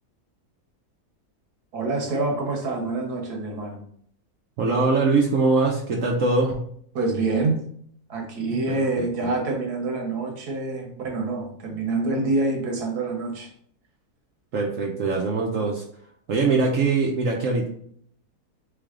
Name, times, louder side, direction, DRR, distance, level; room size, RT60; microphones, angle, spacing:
voice 1, 1.7-3.8 6.9-7.6 8.1-13.5, right 3 dB, 85° right, 1 dB, 1.6 m, -26 dB
voice 2, 4.6-6.6 8.7-9.1 14.5-15.8 16.3-17.7, right 3 dB, 65° right, 0 dB, 1.0 m, -22 dB
3.9 x 3.4 x 3.6 m, 0.62 s
omnidirectional pair, 1.6 m